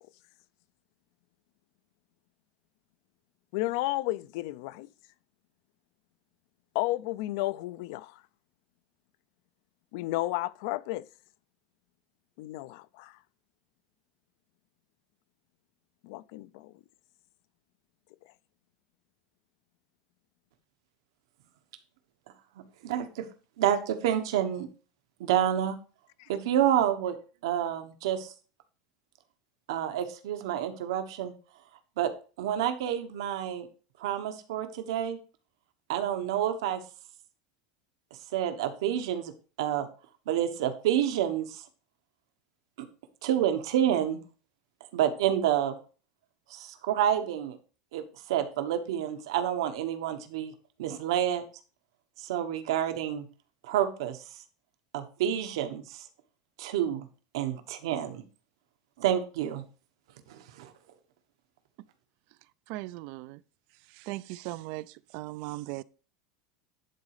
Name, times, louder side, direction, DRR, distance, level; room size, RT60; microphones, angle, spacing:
voice 1, 3.5-4.9 6.7-8.2 9.9-11.1 12.4-13.2 16.0-16.7 26.2-26.3, left 18 dB, 55° left, 0.4 m, -32 dB
voice 2, 22.8-23.3 23.6-24.7 25.2-25.8 26.3-27.2 27.4-28.3 29.7-31.3 32.0-32.1 32.4-33.7 34.0-35.2 35.9-36.8 38.3-39.3 39.6-39.9 40.3-41.6 42.8-42.9 43.2-44.2 44.9-45.8 46.5-47.6 47.9-50.5 50.8-51.4 52.2-53.2 53.7-54.2 54.9-56.0 56.6-57.1 57.3-58.2 59.0-59.6 60.3-60.7, right 10 dB, 80° right, 1.2 m, -28 dB
voice 3, 62.7-63.4 64.0-64.9 65.1-65.8, right 19 dB, 45° right, 0.3 m, -38 dB
11.0 x 4.1 x 4.9 m
supercardioid pair, 180°, 3 cm